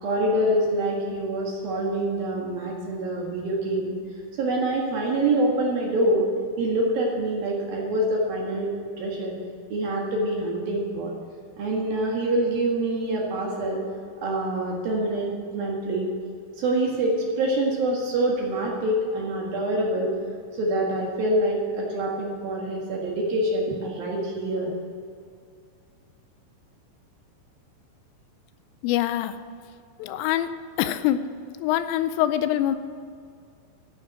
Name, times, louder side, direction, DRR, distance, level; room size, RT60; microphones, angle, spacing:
voice 1, 0.0-3.9 4.4-6.3 6.6-9.4 9.7-11.1 11.6-13.8 14.2-16.1 16.6-20.1 20.5-24.7, right 1 dB, 60° right, -2 dB, 2.9 m, -25 dB
voice 2, 28.8-29.4 30.0-30.5 30.8-31.3 31.6-32.8, left 12 dB, 85° left, 11 dB, 3.2 m, -24 dB
14.0 x 9.1 x 7.4 m, 2.3 s
omnidirectional pair, 5.8 m